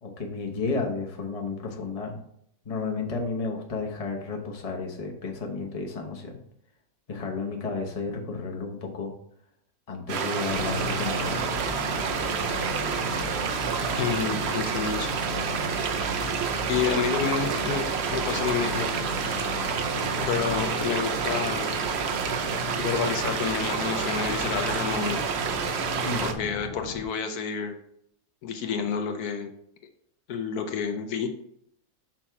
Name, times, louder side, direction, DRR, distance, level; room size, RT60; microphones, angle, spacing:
voice 1, 0.0-2.2 2.6-6.4 7.1-9.1 9.9-11.5 26.0-26.3, left 4 dB, 30° left, 1 dB, 0.9 m, -32 dB
sound 1, 10.1-26.3, right 6 dB, 60° right, 0.7 m, -29 dB
sound 2, 10.5-27.0, left 4 dB, 65° left, 1.2 m, -36 dB
voice 2, 14.0-15.2 16.7-17.8 18.1-19.0 20.3-21.7 22.8-25.2 26.2-27.7 28.4-29.5 30.3-31.3, left 6 dB, 85° left, 5 dB, 1.3 m, -29 dB
6.0 x 4.3 x 4.6 m, 0.72 s
omnidirectional pair, 1.6 m